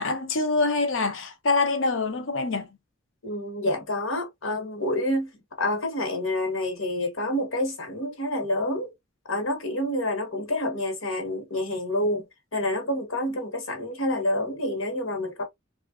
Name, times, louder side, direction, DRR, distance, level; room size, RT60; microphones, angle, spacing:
voice 1, 0.0-2.7, left 3 dB, 70° left, 0.7 m, -25 dB
voice 2, 3.2-5.3 5.6-8.9 9.3-12.2 12.5-15.4, left 1 dB, 85° left, 1.2 m, -28 dB
3.2 x 2.4 x 2.3 m
head